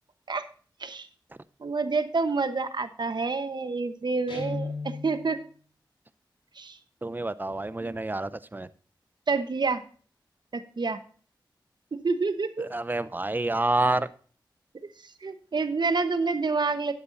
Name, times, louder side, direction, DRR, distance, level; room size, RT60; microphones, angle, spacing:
voice 1, 1.6-5.4 6.5-6.8 9.3-9.8 10.5-11.0 11.9-12.7 15.0-16.9, right 4 dB, 60° right, 10 dB, 1.0 m, -28 dB
Guitar, 4.3-5.4, left 3 dB, 85° left, 4.0 m, -35 dB
voice 2, 7.0-8.7 12.7-14.1, right 2 dB, 25° right, 16 dB, 0.6 m, -28 dB
12.5 x 9.7 x 2.6 m, 0.42 s
cardioid pair, 45°, 8 cm